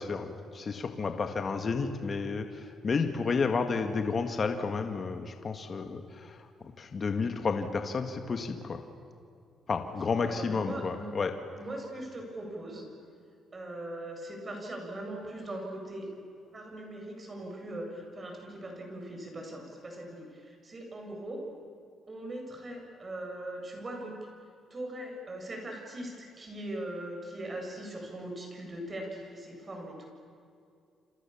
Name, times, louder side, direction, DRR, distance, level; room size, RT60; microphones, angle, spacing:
voice 1, 0.0-2.5 2.8-6.3 6.8-8.8 9.7-11.3, left 4 dB, 40° left, 6 dB, 1.9 m, -31 dB
voice 2, 10.0-11.0 11.5-12.9 13.5-16.1 16.5-21.5 22.1-24.1 24.7-30.0, right 1 dB, 30° right, 1 dB, 7.9 m, -40 dB
29.5 x 27.0 x 7.3 m, 2.4 s
cardioid pair, 90°, 0 cm